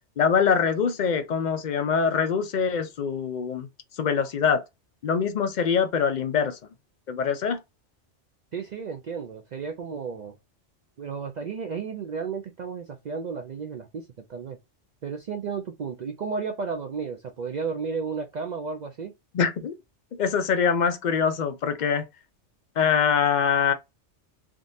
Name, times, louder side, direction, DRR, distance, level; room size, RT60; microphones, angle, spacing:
voice 1, 0.2-3.7 4.0-4.6 5.0-6.6 7.1-7.6 19.3-19.7 20.2-22.0 22.8-23.7, left 6 dB, 55° left, 0.5 m, -24 dB
voice 2, 8.5-10.3 11.0-14.6 15.0-19.1, right 5 dB, 60° right, 0.4 m, -33 dB
3.6 x 2.5 x 2.6 m
omnidirectional pair, 1.2 m